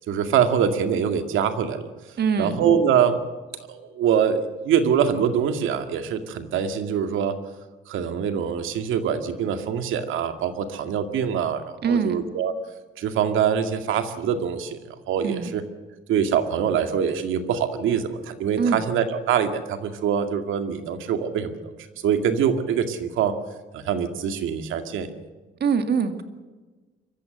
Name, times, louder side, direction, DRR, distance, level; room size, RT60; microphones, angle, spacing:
voice 1, 0.1-1.9 2.4-3.3 3.7-7.4 7.9-12.5 13.0-14.8 15.1-15.6 16.1-21.7 22.0-23.3 23.7-25.1, right 8 dB, 85° right, 7 dB, 2.1 m, -24 dB
voice 2, 2.2-2.6 11.8-12.2 15.2-15.5 18.6-18.8 25.6-26.2, right 6 dB, 55° right, 7 dB, 2.3 m, -23 dB
24.0 x 14.5 x 7.9 m, 1.3 s
cardioid pair, 90°, 20 cm